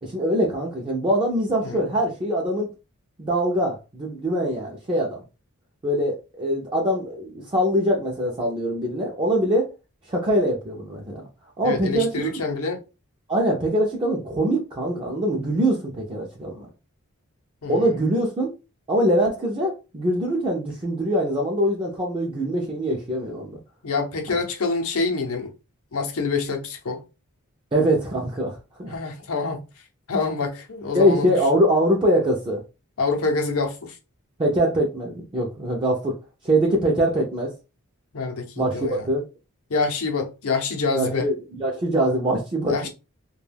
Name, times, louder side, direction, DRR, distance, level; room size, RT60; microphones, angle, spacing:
voice 1, 0.0-2.7 3.2-5.2 5.8-9.7 10.1-11.3 11.6-12.4 13.3-16.7 17.7-18.5 18.9-23.6 27.7-29.0 30.9-32.6 34.4-36.2 36.4-37.5 38.6-39.2 41.0-42.9, right 1 dB, 25° right, 0.5 m, -23 dB
voice 2, 11.6-12.8 17.6-18.0 23.8-25.5 25.9-27.0 28.9-29.6 30.1-31.3 33.0-34.0 38.1-39.1 39.7-41.3 42.6-42.9, left 4 dB, 70° left, 0.7 m, -26 dB
2.2 x 2.2 x 3.3 m
head